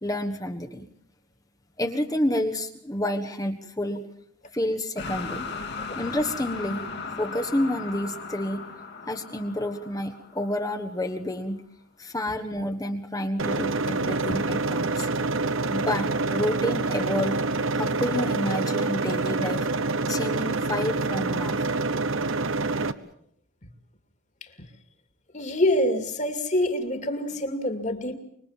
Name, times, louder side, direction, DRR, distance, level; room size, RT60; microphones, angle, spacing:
voice 1, 0.0-0.9 1.8-4.0 4.5-5.5 6.0-8.6 9.1-11.6 12.0-15.1 15.7-17.4 17.7-19.7 20.1-21.7, left 1 dB, 15° left, 5 dB, 1.4 m, -29 dB
sound 1, 5.0-11.0, left 4 dB, 50° left, 2.4 m, -37 dB
sound 2, 13.4-22.9, right 3 dB, 60° right, 1.1 m, -26 dB
voice 2, 25.3-28.1, left 1 dB, 35° left, 8 dB, 2.6 m, -26 dB
26.0 x 23.5 x 7.4 m, 0.66 s
head